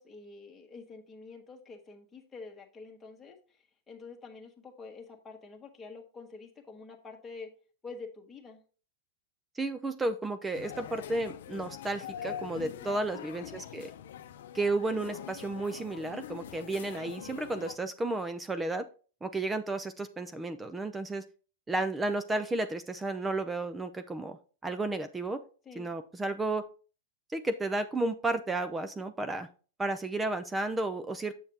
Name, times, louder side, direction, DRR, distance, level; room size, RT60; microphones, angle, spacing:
voice 1, 0.0-7.5 7.8-8.6 12.6-13.0 25.6-25.9, left 4 dB, 15° left, 1 dB, 1.4 m, -47 dB
voice 2, 9.6-13.9 14.5-18.9 19.2-21.2 21.7-24.4 24.6-25.4 25.8-26.6 27.3-29.5 29.8-31.3, right 2 dB, 10° right, 11 dB, 0.5 m, -32 dB
sound 1, 10.5-17.8, left 10 dB, 70° left, 0.6 m, -43 dB
7.1 x 6.5 x 2.9 m, 0.37 s
hypercardioid pair, 135°, 0 cm